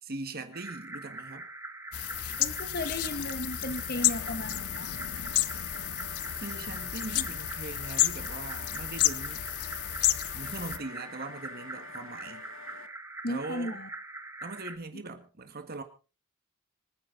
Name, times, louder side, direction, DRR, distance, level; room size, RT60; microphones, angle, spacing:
voice 1, 0.0-1.5 6.4-9.4 10.3-12.4 13.3-13.8 14.4-15.8, right 2 dB, 45° right, 1.6 m, -40 dB
sound 1, 0.5-14.8, right 2 dB, 10° right, 1.4 m, -43 dB
sound 2, 1.9-10.8, left 14 dB, 85° left, 0.8 m, -31 dB
voice 2, 2.4-4.9 13.2-13.9 14.9-15.0, left 1 dB, 45° left, 2.2 m, -35 dB
sound 3, 4.0-12.9, left 5 dB, 60° left, 1.6 m, -49 dB
26.0 x 9.7 x 3.9 m
head